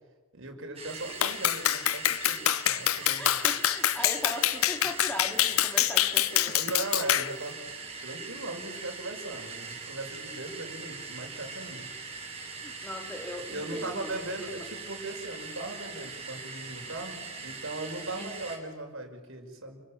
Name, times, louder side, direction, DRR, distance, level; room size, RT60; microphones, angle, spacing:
voice 1, 0.3-3.4 6.5-7.7 8.0-11.9 13.5-19.8, right 2 dB, 60° right, 3 dB, 5.9 m, -38 dB
sound 1, 0.8-18.6, right 4 dB, 30° right, 6.7 m, -41 dB
Clapping, 1.2-7.3, left 13 dB, 75° left, 0.7 m, -26 dB
voice 2, 2.5-2.8 3.2-6.6 12.6-14.7 18.2-18.4, left 1 dB, 5° left, 2 dB, 4.0 m, -39 dB
30.0 x 24.0 x 7.7 m, 1.4 s
head